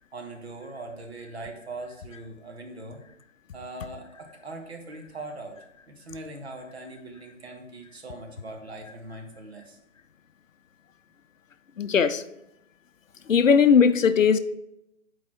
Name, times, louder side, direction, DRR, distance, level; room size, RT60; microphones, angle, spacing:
voice 1, 0.1-3.0 3.5-5.6 5.9-9.8, right 2 dB, 50° right, 3 dB, 1.2 m, -41 dB
voice 2, 11.8-12.2 13.3-14.4, left 6 dB, 70° left, 12 dB, 0.6 m, -18 dB
4.7 x 4.3 x 5.7 m, 0.85 s
figure-of-eight pair, 145°, 40 cm